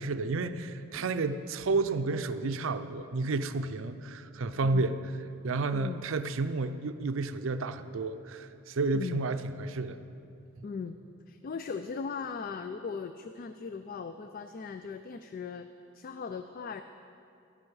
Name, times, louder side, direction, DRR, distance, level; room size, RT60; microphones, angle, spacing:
voice 1, 0.0-5.0 5.4-10.0, right 3 dB, 70° right, 10 dB, 0.5 m, -31 dB
voice 2, 8.9-9.2 10.6-10.9 11.3-15.7 15.9-16.8, left 5 dB, 40° left, 9 dB, 0.3 m, -38 dB
12.5 x 9.7 x 4.8 m, 2.6 s
head